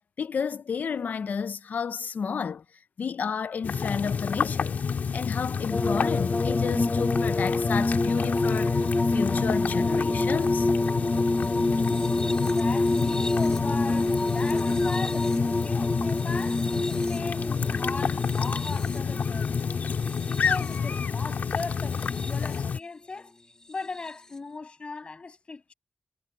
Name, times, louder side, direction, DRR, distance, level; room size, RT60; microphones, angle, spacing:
voice 1, 0.2-2.6 3.0-4.8 5.1-10.7, left 6 dB, 75° left, 0.6 m, -31 dB
sound 1, 3.6-22.8, left 6 dB, 90° left, 1.9 m, -29 dB
sound 2, 5.7-21.0 21.8-22.5 24.0-24.1, left 2 dB, 25° left, 1.5 m, -27 dB
voice 2, 12.2-19.9 20.3-23.3 23.7-25.7, left 4 dB, 40° left, 7.3 m, -38 dB
wide cardioid pair, 150°, 3 cm